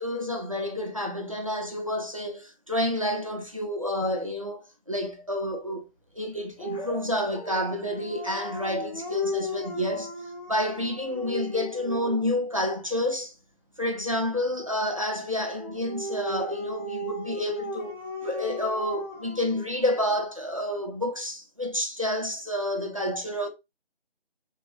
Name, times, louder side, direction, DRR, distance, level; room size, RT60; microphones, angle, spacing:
voice 1, 0.0-5.9 6.1-13.3 13.8-23.5, left 1 dB, 35° right, 0.4 m, -29 dB
Dog, 6.6-12.4 15.6-20.2, equal, 25° left, 1.0 m, -36 dB
3.1 x 2.6 x 2.9 m
figure-of-eight pair, 170°, 32 cm